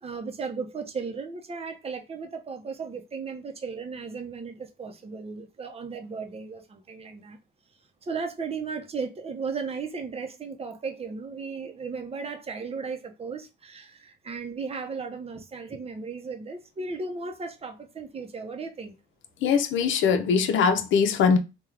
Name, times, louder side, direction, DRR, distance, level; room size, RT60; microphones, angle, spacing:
voice 1, 0.0-7.4 8.0-19.0, right 4 dB, 30° right, 0.7 m, -35 dB
voice 2, 19.4-21.4, left 6 dB, 75° left, 0.6 m, -21 dB
3.5 x 2.3 x 3.2 m
cardioid pair, 90°, 20 cm